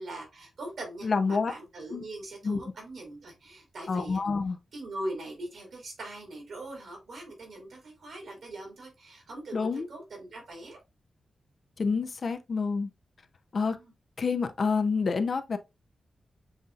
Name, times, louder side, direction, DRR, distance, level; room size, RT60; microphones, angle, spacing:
voice 1, 0.0-4.2 4.7-10.8 13.6-13.9, right 1 dB, 75° right, 2.2 m, -41 dB
voice 2, 1.0-1.5 1.9-2.0 2.4-2.6 3.9-4.6 9.5-9.9 11.8-12.9 13.5-13.8 14.2-15.6, left 4 dB, 55° left, 0.5 m, -28 dB
7.2 x 2.6 x 2.4 m
cardioid pair, 80°, 0 cm